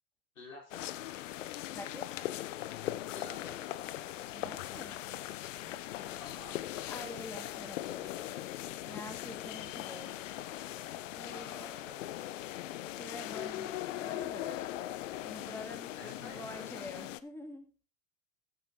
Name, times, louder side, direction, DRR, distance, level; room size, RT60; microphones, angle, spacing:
voice 1, 0.3-1.1 3.1-3.8 6.2-6.7 11.3-12.2 15.9-17.1, left 3 dB, 90° left, 0 dB, 4.2 m, -51 dB
sound 1, 0.7-17.2, left 13 dB, 70° left, 0.8 m, -40 dB
voice 2, 1.7-2.1 4.3-5.0 5.6-6.1 6.9-8.2 8.8-10.2 11.1-11.7 13.0-14.6 15.2-17.7, left 1 dB, 5° left, 4 dB, 2.3 m, -47 dB
11.5 x 9.0 x 3.7 m, 0.36 s
hypercardioid pair, 90°, 39 cm